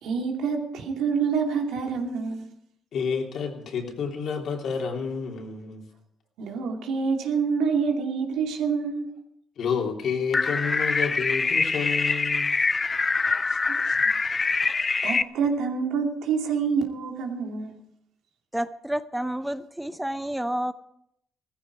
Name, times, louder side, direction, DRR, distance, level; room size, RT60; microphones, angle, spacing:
voice 1, 0.0-2.5 6.4-9.1 13.7-14.0 14.6-17.8, right 5 dB, 90° right, 2.6 m, -27 dB
voice 2, 2.9-5.8 9.6-12.5, left 6 dB, 70° left, 3.2 m, -29 dB
sound 1, 10.3-15.2, left 4 dB, 30° left, 0.5 m, -24 dB
voice 3, 18.5-20.7, right 1 dB, 5° right, 0.8 m, -29 dB
17.0 x 14.5 x 4.8 m
cardioid pair, 90°, 0 cm